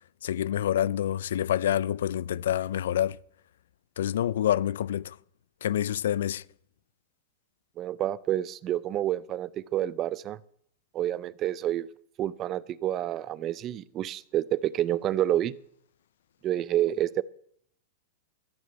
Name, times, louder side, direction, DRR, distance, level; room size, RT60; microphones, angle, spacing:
voice 1, 0.2-3.2 4.0-5.2 5.6-6.4, left 11 dB, 85° left, 0.5 m, -27 dB
voice 2, 7.8-10.4 10.9-11.9 12.2-15.5 16.4-17.2, right 12 dB, 25° right, 0.4 m, -28 dB
14.0 x 6.5 x 9.1 m
supercardioid pair, 165°, 0 cm